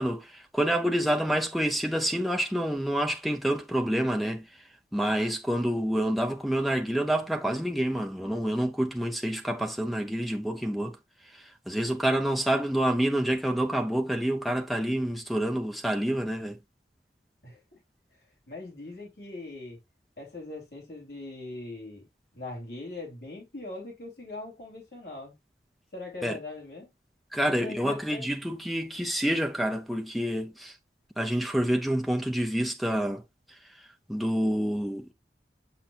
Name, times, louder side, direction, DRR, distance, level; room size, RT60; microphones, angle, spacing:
voice 1, 0.0-4.7 4.9-11.0 11.2-16.6 26.2-26.4 27.3-30.8 31.2-33.2 33.5-35.1, right 1 dB, ahead, 0.5 m, -28 dB
voice 2, 17.4-17.8 18.5-19.8 20.2-22.1 22.3-25.3 25.9-26.9 27.5-28.3, left 2 dB, 70° left, 2.7 m, -41 dB
7.1 x 5.8 x 2.3 m
head